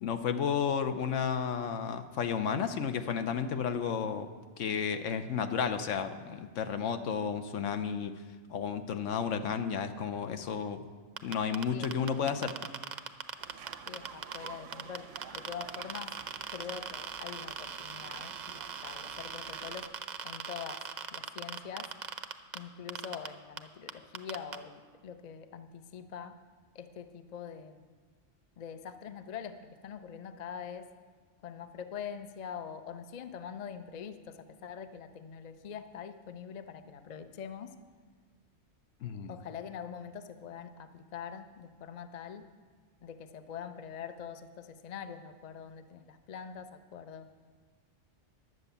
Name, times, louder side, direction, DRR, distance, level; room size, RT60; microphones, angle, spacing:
voice 1, 0.0-4.3 4.6-8.1 8.5-10.8 11.2-12.5 39.0-39.4, left 7 dB, 80° left, 9 dB, 1.0 m, -32 dB
sound 1, 11.2-14.5 14.7-22.6 22.9-23.3 23.6-23.7 23.9-24.6, right 7 dB, 50° right, 0.6 m, -39 dB
voice 2, 11.7-12.4 13.9-15.1 15.3-16.2 16.5-19.9 20.2-20.8 21.1-21.9 22.5-26.4 26.7-27.9 28.6-30.9 31.4-37.7 39.3-42.5 43.0-47.3, left 7 dB, 50° left, 10 dB, 0.5 m, -44 dB
sound 2, 13.4-19.9, right 7 dB, 80° right, 1.0 m, -50 dB
11.0 x 7.9 x 6.8 m, 1.5 s
omnidirectional pair, 1.3 m